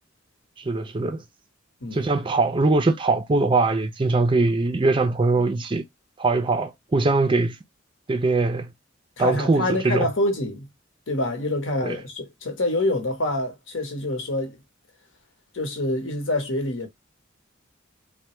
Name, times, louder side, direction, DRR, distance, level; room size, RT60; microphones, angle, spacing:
voice 1, 0.6-1.2 1.9-5.8 6.2-7.6 8.1-8.7 9.2-10.1 11.8-12.0, right 3 dB, 25° right, 0.4 m, -22 dB
voice 2, 9.2-10.7 11.1-14.6 15.5-16.9, left 1 dB, 75° left, 1.0 m, -26 dB
3.3 x 2.1 x 3.0 m
head